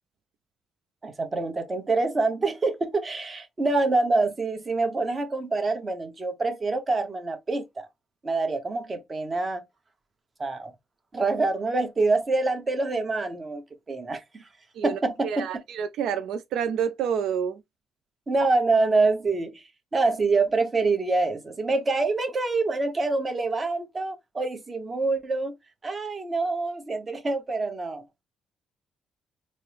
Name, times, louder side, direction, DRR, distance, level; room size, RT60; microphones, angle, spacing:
voice 1, 1.0-7.9 8.2-9.7 10.4-10.7 11.1-14.4 14.8-15.5 18.3-19.6 19.9-25.5 25.8-28.2, right 3 dB, 30° right, 1.0 m, -26 dB
voice 2, 14.7-17.6, right 8 dB, 80° right, 0.4 m, -28 dB
4.2 x 2.0 x 3.3 m
cardioid pair, 90°, 0 cm